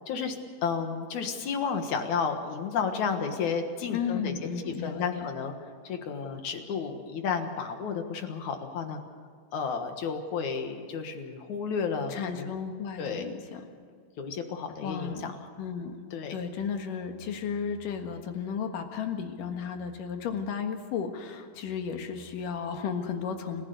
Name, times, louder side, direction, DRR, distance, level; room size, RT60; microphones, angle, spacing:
voice 1, 0.1-0.4 0.6-4.3 4.7-5.5 5.8-9.0 9.5-12.5 13.0-13.3 14.2-15.4 16.1-16.4, left 6 dB, 65° left, 6 dB, 2.8 m, -32 dB
voice 2, 3.9-5.3 12.1-13.6 14.8-15.2 15.6-15.9 16.3-23.6, left 6 dB, 90° left, 5 dB, 3.3 m, -34 dB
29.0 x 15.5 x 6.8 m, 2.1 s
omnidirectional pair, 3.7 m